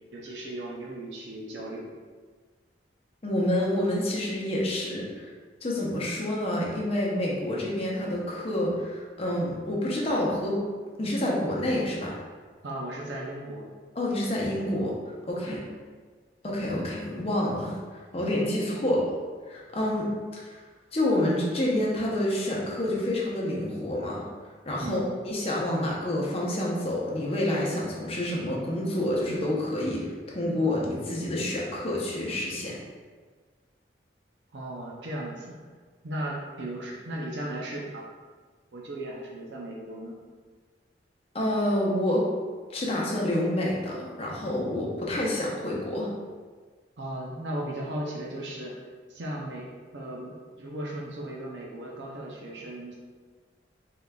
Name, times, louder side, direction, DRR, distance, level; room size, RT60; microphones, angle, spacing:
voice 1, 0.1-1.9 12.6-13.7 15.4-15.7 18.8-19.0 24.8-25.1 34.5-35.6 36.0-38.0 38.7-40.2 47.0-48.7 49.1-49.7 49.9-52.9, right 1 dB, 75° right, -3 dB, 0.5 m, -36 dB
voice 2, 3.2-5.3 5.6-10.6 11.0-12.1 14.0-15.0 15.3-15.6 16.4-17.8 18.1-19.1 19.5-20.6 20.9-24.2 24.7-32.8 41.3-42.2 42.7-46.1, left 1 dB, 35° left, -4 dB, 0.7 m, -28 dB
3.7 x 3.4 x 2.3 m, 1.5 s
head